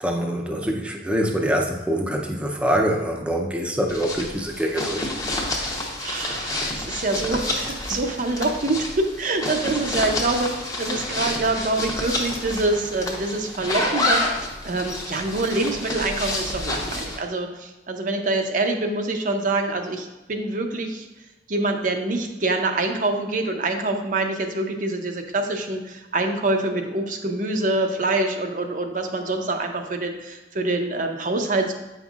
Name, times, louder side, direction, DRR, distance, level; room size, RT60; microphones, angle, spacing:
voice 1, 0.0-5.1, equal, 5° right, 1 dB, 0.6 m, -24 dB
sound 1, 3.9-17.2, left 1 dB, 20° left, 0.8 m, -29 dB
voice 2, 6.0-21.1 21.5-31.7, right 2 dB, 45° right, 4 dB, 0.6 m, -25 dB
8.3 x 5.4 x 2.4 m, 1.1 s
head